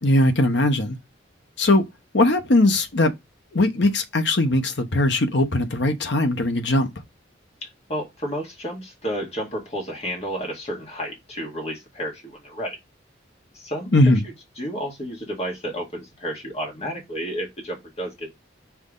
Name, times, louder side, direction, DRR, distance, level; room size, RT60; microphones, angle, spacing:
voice 1, 0.0-1.0 1.6-1.8 2.1-3.1 3.5-6.9 13.9-14.2, left 1 dB, 65° left, 1.1 m, -19 dB
voice 2, 7.9-12.8 13.5-18.3, equal, 35° left, 2.4 m, -31 dB
6.1 x 4.3 x 3.9 m
head